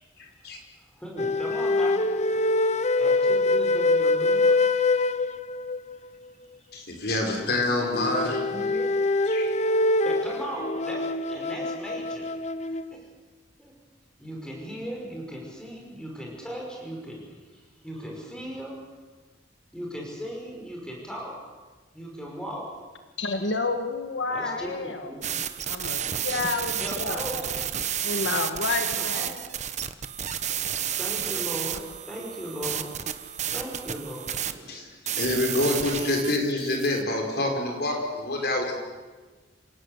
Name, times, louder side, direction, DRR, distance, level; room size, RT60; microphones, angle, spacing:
voice 1, 0.2-0.6 6.7-8.4 9.3-9.5 34.7-34.9 35.2-38.7, left 2 dB, 60° left, 2 dB, 5.1 m, -27 dB
voice 2, 0.9-2.6 3.0-4.7 8.0-9.0 10.0-12.3 12.9-13.1 13.6-13.7 14.2-18.8 19.7-21.4 21.9-22.7 24.3-24.7 25.0-25.3 26.7-27.6 28.9-29.5 31.0-33.0 33.5-34.3, equal, 5° left, -1 dB, 6.2 m, -37 dB
sound 1, 1.2-6.0 7.9-12.9, left 2 dB, 40° left, 0.8 m, -24 dB
voice 3, 23.2-25.1 25.7-27.2 28.0-29.3, left 3 dB, 80° left, 6 dB, 1.7 m, -30 dB
sound 2, 25.2-37.0, right 9 dB, 40° right, 1.1 m, -31 dB
28.0 x 17.5 x 8.3 m, 1.3 s
head